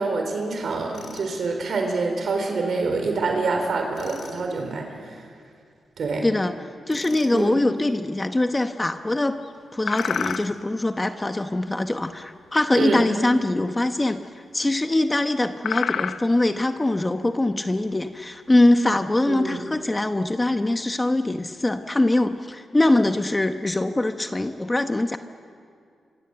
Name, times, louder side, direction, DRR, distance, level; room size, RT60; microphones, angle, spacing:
voice 1, 0.0-4.8 6.0-6.3 7.3-7.6 12.8-13.0 19.3-19.6, right 3 dB, 65° right, 3 dB, 4.0 m, -26 dB
Tools, 0.9-1.3 3.9-4.4 6.9-7.4 9.9-10.5, left 4 dB, 55° left, 3.7 m, -42 dB
voice 2, 6.2-6.6 6.9-9.4 9.7-14.2 14.5-25.2, left 2 dB, 15° left, 7 dB, 1.0 m, -22 dB
sound 1, 8.6-9.2 9.4-9.5 9.9-10.8 11.4-12.8 13.0-13.4 13.6-13.8 14.1-14.2 15.0-15.1 15.4-16.8 17.2-17.5 18.0-19.1 19.6-19.9 20.3-20.4 20.7-21.1 21.8-21.9 22.2-22.4, left 7 dB, 80° left, 0.8 m, -31 dB
25.5 x 25.0 x 7.9 m, 2.3 s
cardioid pair, 105°, 0 cm